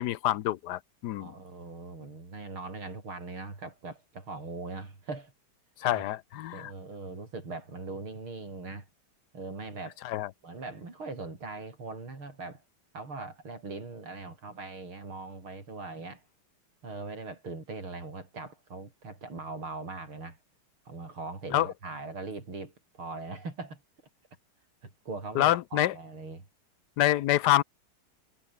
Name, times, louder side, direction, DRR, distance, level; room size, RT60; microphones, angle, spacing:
voice 1, 0.0-1.3 5.8-6.7 10.0-10.3 21.5-21.7 25.4-25.9 27.0-27.6, left 14 dB, 70° left, 1.0 m, -26 dB
voice 2, 1.2-5.3 5.9-6.0 6.5-8.9 9.3-10.0 10.4-12.6 12.9-16.2 16.8-20.4 20.9-23.8 24.8-26.4, right 3 dB, 80° right, 6.3 m, -40 dB
omnidirectional pair, 2.3 m